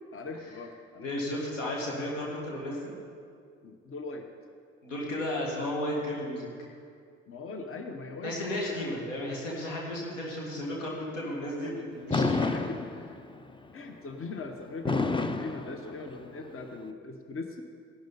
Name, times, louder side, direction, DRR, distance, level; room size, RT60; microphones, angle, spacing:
voice 1, 0.1-1.1 3.6-4.3 7.3-9.0 11.6-11.7 12.4-12.8 13.7-17.6, left 3 dB, 35° left, 6 dB, 1.2 m, -40 dB
voice 2, 1.0-2.9 4.8-6.5 8.2-12.7, left 1 dB, 85° left, -3 dB, 2.2 m, -34 dB
Fireworks, 12.1-13.4 14.9-16.4, left 3 dB, 15° left, 0.7 m, -29 dB
15.5 x 11.5 x 4.2 m, 2.3 s
hypercardioid pair, 50°, 37 cm